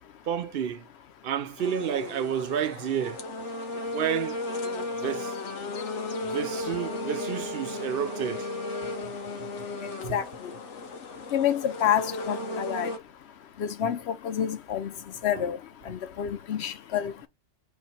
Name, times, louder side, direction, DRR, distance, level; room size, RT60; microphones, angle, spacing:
voice 1, 0.3-0.8 1.2-3.2 3.9-4.4 5.0-5.3 6.2-8.5 10.0-10.1, right 9 dB, 60° right, 0.8 m, -30 dB
sound 1, 1.6-13.0, left 2 dB, 90° left, 1.3 m, -35 dB
voice 2, 10.1-10.5 11.3-12.9 13.6-14.9 15.2-15.6 15.9-17.1, left 9 dB, 70° left, 1.0 m, -28 dB
4.5 x 2.8 x 4.2 m
omnidirectional pair, 1.2 m